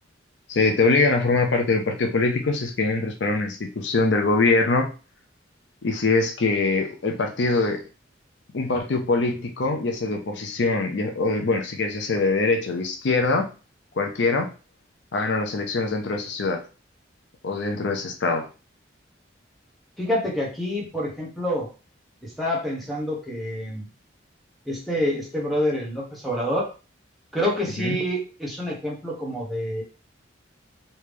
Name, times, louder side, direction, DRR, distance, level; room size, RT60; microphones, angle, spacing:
voice 1, 0.5-4.9 5.8-7.8 8.5-13.5 14.0-14.5 15.1-16.6 17.4-18.5 27.8-28.0, left 3 dB, 65° left, 4 dB, 0.5 m, -23 dB
voice 2, 20.0-21.7 22.2-23.8 24.7-26.7 27.3-29.8, equal, ahead, -4 dB, 0.9 m, -27 dB
3.3 x 2.7 x 3.3 m, 0.34 s
head